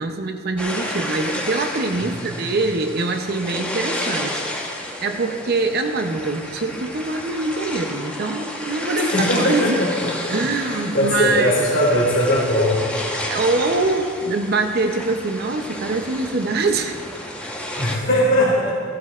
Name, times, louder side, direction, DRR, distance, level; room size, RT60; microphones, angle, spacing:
voice 1, 0.0-4.5 5.0-9.8 10.3-11.5 13.2-17.0, right 3 dB, 55° right, 6 dB, 0.7 m, -24 dB
sound 1, 0.6-18.0, left 1 dB, 5° left, 1.1 m, -31 dB
voice 2, 2.0-2.6 9.0-10.3 10.6-12.8 17.8-18.7, left 1 dB, 70° left, -7 dB, 2.3 m, -20 dB
16.0 x 12.5 x 2.5 m, 2.2 s
head